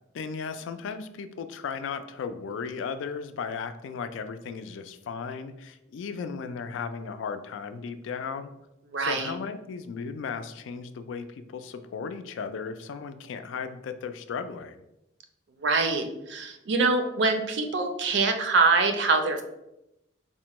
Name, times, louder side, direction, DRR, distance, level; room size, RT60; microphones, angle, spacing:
voice 1, 0.1-8.5 9.0-14.8, left 5 dB, 80° left, 10 dB, 0.3 m, -36 dB
voice 2, 8.9-9.3 15.6-19.4, right 3 dB, 65° right, 6 dB, 0.5 m, -24 dB
4.1 x 2.1 x 2.9 m, 0.87 s
head